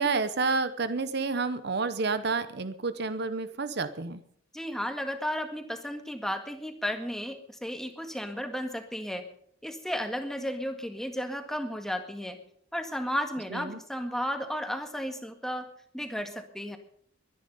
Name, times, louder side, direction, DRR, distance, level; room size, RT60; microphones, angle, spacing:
voice 1, 0.0-4.2 13.5-13.8, right 4 dB, 55° right, 12 dB, 0.9 m, -29 dB
voice 2, 4.5-9.2 9.6-12.4 12.7-15.7 15.9-16.8, equal, ahead, 6 dB, 1.8 m, -33 dB
22.5 x 10.0 x 5.5 m, 0.63 s
head